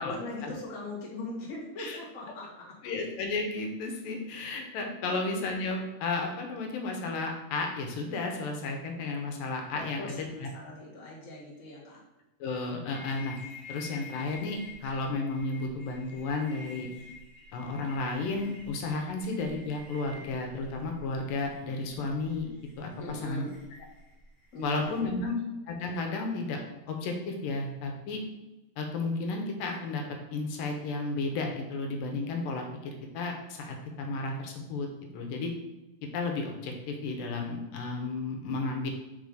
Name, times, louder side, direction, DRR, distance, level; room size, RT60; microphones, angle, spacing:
voice 1, 0.0-2.7 5.0-5.2 9.7-12.0 23.0-23.5 24.5-25.3, left 2 dB, 35° left, -5 dB, 1.4 m, -40 dB
voice 2, 2.8-10.5 12.4-13.4 13.7-16.9 17.5-23.5 24.6-25.4 25.7-28.2 28.8-30.0 30.3-34.9 35.1-35.5 36.1-38.9, left 3 dB, 80° left, 2 dB, 2.5 m, -33 dB
sound 1, 12.9-25.0, left 3 dB, 10° left, 0.9 m, -50 dB
5.4 x 4.4 x 4.9 m, 1.0 s
omnidirectional pair, 4.0 m